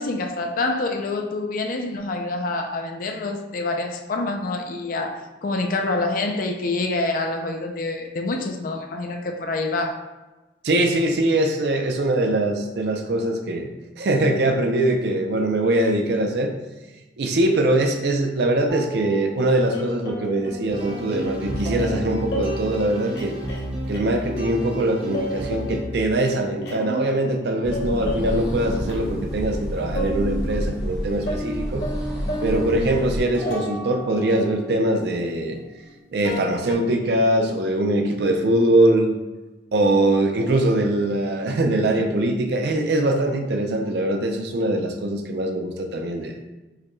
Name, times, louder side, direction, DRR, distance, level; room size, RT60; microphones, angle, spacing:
voice 1, 0.0-10.0, left 2 dB, 50° left, 4 dB, 0.4 m, -26 dB
voice 2, 10.6-13.7 14.0-16.5 17.2-23.3 23.9-31.8 32.4-35.6 36.1-39.2 39.7-46.3, right 1 dB, 65° right, 4 dB, 0.5 m, -22 dB
sound 1, 18.7-21.2 21.6-22.0 22.3-22.6 23.1-24.4 24.6-26.0 26.3-27.5 27.7-29.7 29.9-30.6 30.9-31.0 31.3-35.9 36.2-36.7, equal, 65° left, 0.8 m, -33 dB
sound 2, 20.7-25.8, right 1 dB, 35° right, 0.7 m, -31 dB
sound 3, 27.6-33.2, equal, 10° right, 1.0 m, -29 dB
4.7 x 2.2 x 3.0 m, 1.1 s
head